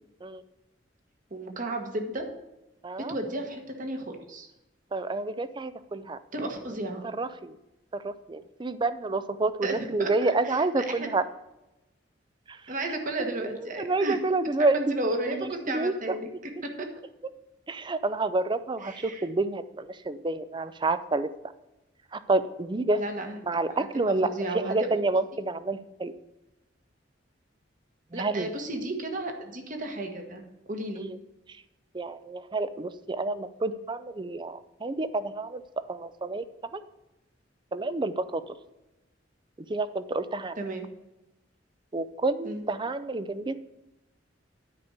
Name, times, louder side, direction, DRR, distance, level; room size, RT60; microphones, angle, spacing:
voice 1, 1.3-2.4 3.1-4.5 6.3-7.0 9.6-11.1 12.7-14.2 14.6-16.9 18.8-19.3 23.0-23.4 23.8-23.9 24.2-25.0 28.1-30.4 30.7-31.1 40.6-40.9 42.4-42.6, right 1 dB, 45° right, 4 dB, 1.5 m, -33 dB
voice 2, 2.8-3.1 4.9-6.2 7.2-7.6 8.0-11.2 12.5-12.7 13.2-13.5 13.8-15.0 15.3-15.9 17.7-21.3 22.1-23.0 23.4-24.3 24.7-26.2 28.1-28.5 31.0-31.2 31.9-36.4 36.7-36.8 37.7-38.5 39.7-40.6 41.9-43.6, right 2 dB, 25° right, 13 dB, 0.5 m, -29 dB
9.7 x 5.1 x 8.0 m, 0.95 s
head